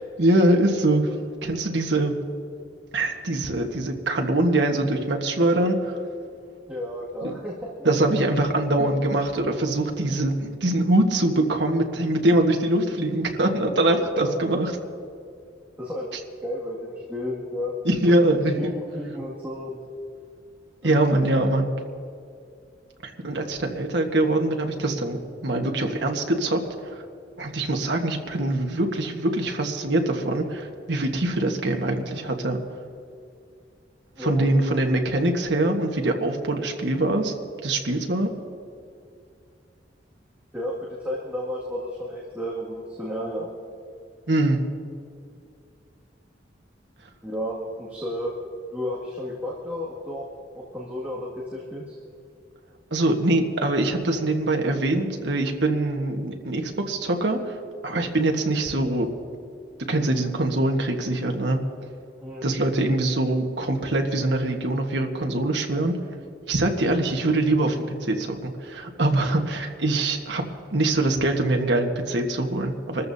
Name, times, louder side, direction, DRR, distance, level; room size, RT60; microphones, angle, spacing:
voice 1, 0.2-1.1 1.4-2.1 2.9-5.9 7.2-7.3 7.8-14.7 17.8-18.7 20.8-21.7 23.0-26.6 27.4-32.6 34.2-37.3 37.6-38.3 44.3-44.6 52.9-57.5 57.8-59.1 59.8-61.6 62.4-65.9 66.5-67.7 68.1-70.4 70.7-73.0, right 1 dB, 70° right, 3 dB, 1.4 m, -23 dB
voice 2, 6.7-7.9 8.8-9.2 14.0-14.4 15.8-17.7 18.6-19.8 20.8-21.0 21.4-21.5 34.2-34.5 40.5-43.5 47.2-48.3 48.7-50.3 50.5-52.0 62.2-62.5, left 1 dB, 10° right, -7 dB, 2.1 m, -32 dB
27.0 x 14.0 x 2.8 m, 2.4 s
head